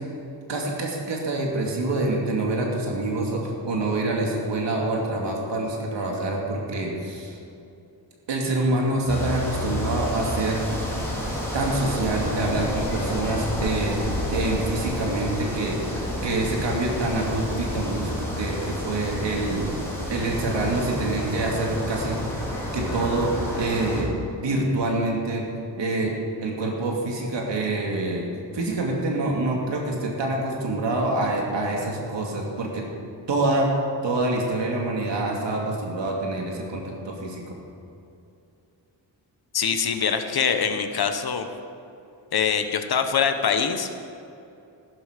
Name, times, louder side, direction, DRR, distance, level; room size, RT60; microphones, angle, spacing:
voice 1, 0.5-7.4 8.3-10.8 11.5-14.0 14.3-15.8 16.2-19.6 20.1-22.2 22.7-24.1 24.4-25.4 25.8-26.1 26.4-28.3 28.5-32.8 33.3-33.7 34.0-37.6, right 2 dB, 70° right, -1 dB, 2.6 m, -26 dB
sound 1, 9.1-24.0, left 1 dB, 5° left, 3.7 m, -30 dB
voice 2, 39.5-41.5 42.3-43.9, left 6 dB, 55° left, 7 dB, 1.1 m, -23 dB
15.0 x 12.5 x 5.2 m, 2.7 s
wide cardioid pair, 130°, 45 cm